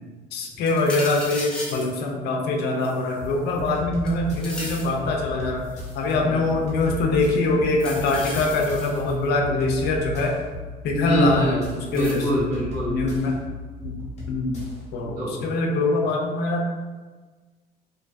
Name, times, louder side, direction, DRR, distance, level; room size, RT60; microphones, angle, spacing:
voice 1, 0.3-5.7 5.9-10.3 10.8-11.6 11.9-12.2 12.9-13.4 13.8-14.0 14.2-14.6 14.9-16.7, left 2 dB, 70° left, 0 dB, 0.5 m, -23 dB
sound 1, 0.7-1.9 2.8-3.7 4.1-5.0 5.6-6.1 7.7-9.3 11.0-11.1 11.9-12.3, left 1 dB, 5° left, 0.6 m, -36 dB
sound 2, 3.2-14.9, left 1 dB, 40° left, 0.9 m, -36 dB
voice 2, 10.9-13.0 15.0-15.4, equal, 35° right, -12 dB, 1.0 m, -25 dB
2.5 x 2.2 x 2.5 m, 1.3 s
cardioid pair, 110°, 17 cm